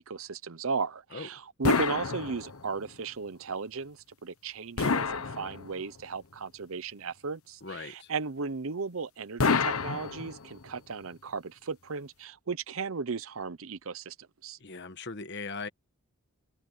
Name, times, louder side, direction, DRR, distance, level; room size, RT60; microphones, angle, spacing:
voice 1, 0.0-14.1 14.4-14.6, right 4 dB, 70° right, 0.8 m, -35 dB
sound 1, 1.6-2.8 4.8-6.0 9.4-10.7, left 4 dB, 75° left, 1.1 m, -28 dB
voice 2, 7.6-8.1 14.6-15.7, left 4 dB, 50° left, 1.3 m, -39 dB
head